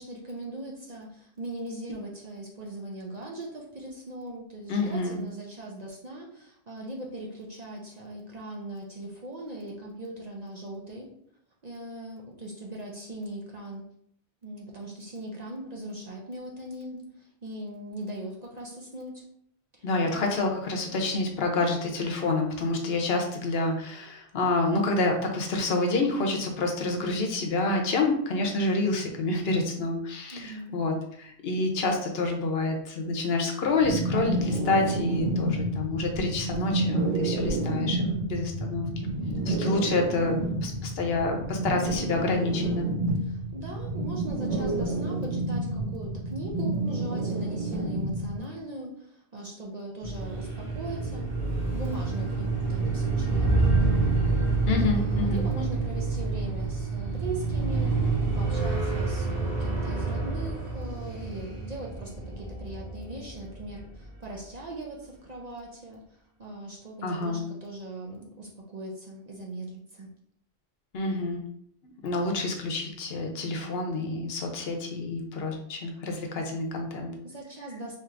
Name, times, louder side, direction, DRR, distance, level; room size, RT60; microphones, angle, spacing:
voice 1, 0.0-11.1 11.6-13.9 14.4-19.2 19.7-20.4 30.3-30.8 43.2-54.1 54.9-66.0 66.4-70.1 77.2-78.0, right 1 dB, 45° right, -1 dB, 0.6 m, -40 dB
voice 2, 4.7-5.2 19.8-38.9 39.4-42.9 54.7-55.4 67.0-67.4 70.9-71.4 71.8-77.1, left 3 dB, 65° left, 2 dB, 0.9 m, -28 dB
sound 1, 33.8-48.4, right 2 dB, 70° right, 1.7 m, -29 dB
sound 2, 50.0-64.1, right 3 dB, 30° right, 1.3 m, -28 dB
4.5 x 2.8 x 2.4 m, 0.69 s
omnidirectional pair, 1.1 m